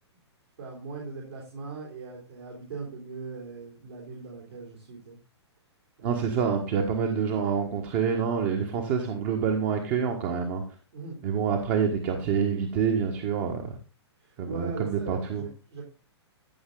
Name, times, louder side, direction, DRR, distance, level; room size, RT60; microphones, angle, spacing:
voice 1, 0.6-5.2 6.0-6.2 10.9-11.2 14.2-15.8, right 4 dB, 65° right, -3 dB, 3.8 m, -40 dB
voice 2, 6.0-10.6 11.2-13.7 14.4-15.4, right 6 dB, 35° right, 3 dB, 1.5 m, -27 dB
14.5 x 6.5 x 3.9 m, 0.34 s
figure-of-eight pair, 110°, 15 cm